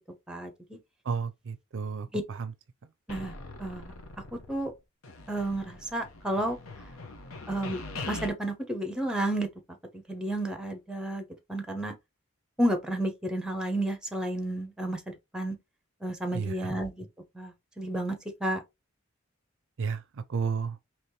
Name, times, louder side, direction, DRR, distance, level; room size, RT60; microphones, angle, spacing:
voice 1, 0.3-0.8 2.1-2.2 3.1-3.3 3.6-3.9 4.5-4.7 5.3-6.6 7.5-9.5 10.1-11.2 11.5-11.9 12.6-15.6 16.0-17.1 17.3-18.2 18.4-18.6, right 1 dB, 5° right, 0.9 m, -31 dB
voice 2, 1.1-2.5 16.3-16.7 19.8-20.8, right 5 dB, 65° right, 0.5 m, -32 dB
sound 1, 3.1-4.8 5.0-8.3, left 3 dB, 80° left, 0.9 m, -42 dB
4.2 x 3.0 x 3.2 m
head